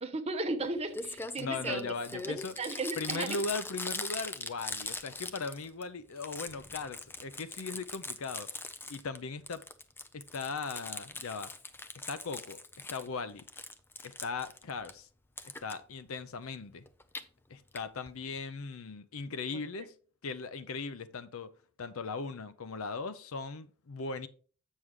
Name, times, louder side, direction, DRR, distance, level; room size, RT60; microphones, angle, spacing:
voice 1, 0.0-1.8 2.3-3.4 19.5-19.6, right 3 dB, 30° right, 0.8 m, -35 dB
Crumpling crinkling, 0.6-0.7 0.9-5.8 6.1-9.2 9.5-13.1 13.4-14.9 15.4-15.7 16.9-17.2 17.7-17.8 18.1-18.2 18.4-18.5, left 3 dB, 10° left, 0.4 m, -41 dB
voice 2, 1.4-2.5 3.0-8.5 8.9-9.7 10.1-11.5 12.1-13.4 14.0-15.1 15.4-16.9 17.5-20.0 20.2-21.5 21.8-24.3, left 4 dB, 70° left, 0.6 m, -38 dB
7.7 x 6.3 x 3.6 m
head